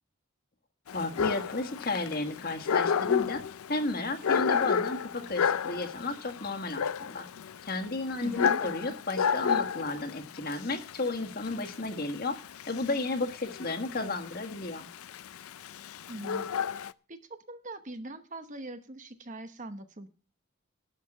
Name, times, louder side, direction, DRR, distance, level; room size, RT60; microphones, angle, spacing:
Dog, 0.9-16.9, left 7 dB, 90° left, 0.5 m, -31 dB
voice 1, 0.9-3.4 3.7-7.3 7.6-12.4 12.7-14.9, left 2 dB, 45° left, 5 dB, 1.5 m, -33 dB
voice 2, 8.2-8.7 16.1-16.5 16.7-20.1, right 1 dB, 35° right, 9 dB, 1.0 m, -42 dB
12.0 x 5.7 x 8.9 m, 0.36 s
head